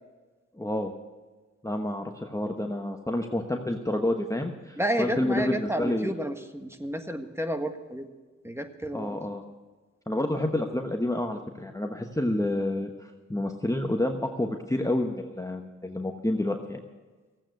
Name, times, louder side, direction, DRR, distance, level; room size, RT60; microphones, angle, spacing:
voice 1, 0.5-0.9 1.6-6.1 8.9-9.4 10.1-16.8, left 1 dB, 10° left, 4 dB, 1.1 m, -29 dB
voice 2, 4.8-8.1 8.4-9.2, right 1 dB, 10° right, 6 dB, 1.5 m, -31 dB
14.5 x 8.9 x 7.8 m, 1.3 s
cardioid pair, 45°, 30 cm